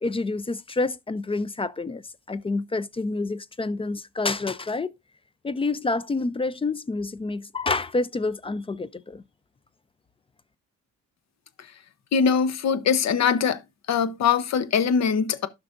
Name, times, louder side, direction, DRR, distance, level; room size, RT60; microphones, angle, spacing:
voice 1, 0.0-2.0 2.3-4.9 5.4-9.2, left 3 dB, 20° left, 0.4 m, -28 dB
voice 2, 12.1-13.6 13.9-15.5, left 6 dB, 60° left, 0.9 m, -22 dB
12.5 x 5.8 x 2.5 m
cardioid pair, 90°, 30 cm